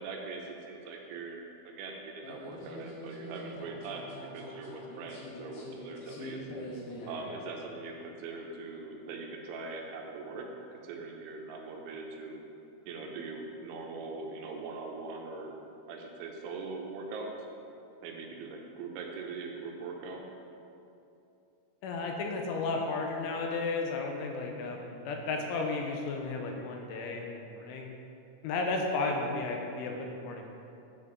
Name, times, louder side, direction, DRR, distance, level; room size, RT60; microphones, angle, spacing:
voice 1, 0.0-6.4 7.1-10.5 10.8-12.4 12.9-15.6 15.9-17.3 18.0-20.3, right 3 dB, 80° right, 1 dB, 3.2 m, -41 dB
sound 1, 2.2-7.3, left 1 dB, 65° left, 2.8 m, -44 dB
voice 2, 21.8-27.9 28.4-30.5, left 3 dB, 85° left, 2 dB, 3.2 m, -33 dB
9.5 x 7.6 x 3.9 m, 2.7 s
omnidirectional pair, 5.7 m